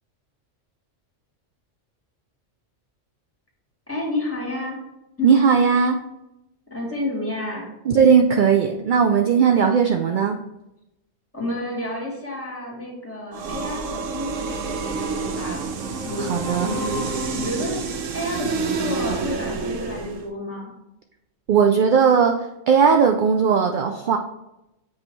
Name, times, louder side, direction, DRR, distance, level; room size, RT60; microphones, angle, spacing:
voice 1, 3.9-4.8 5.2-5.3 6.7-7.7 11.3-15.7 16.0-16.3 16.6-17.1 17.3-17.8 18.1-20.7, left 1 dB, 10° left, -4 dB, 1.9 m, -30 dB
voice 2, 5.2-6.0 7.9-10.4 16.2-16.7 21.5-22.4 22.7-24.2, right 6 dB, 65° right, 4 dB, 0.5 m, -17 dB
sound 1, 13.3-20.3, right 4 dB, 80° right, 1.1 m, -28 dB
7.4 x 3.1 x 4.4 m, 0.91 s
omnidirectional pair, 1.3 m